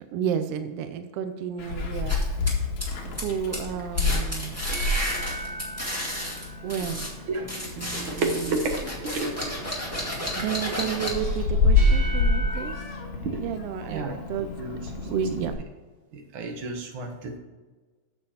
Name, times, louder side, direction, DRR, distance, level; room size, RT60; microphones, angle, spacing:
voice 1, 0.0-2.2 3.2-4.6 6.6-7.0 7.8-8.2 10.3-12.8 13.4-14.5 15.1-15.5, right 8 dB, 85° right, 8 dB, 1.3 m, -31 dB
Meow, 1.6-15.5, left 3 dB, 75° left, 2.6 m, -28 dB
sound 1, 2.1-3.3 3.5-3.7 4.0-7.1 7.5-11.4, equal, 5° right, 1.3 m, -33 dB
sound 2, 3.9-7.4 11.0-12.8, right 1 dB, 35° right, 3.7 m, -38 dB
voice 2, 8.0-8.7 9.0-9.6 13.9-14.9 15.6-15.7 16.1-17.4, right 3 dB, 55° right, 2 dB, 1.8 m, -31 dB
8.9 x 7.2 x 4.3 m, 1.3 s
omnidirectional pair, 3.3 m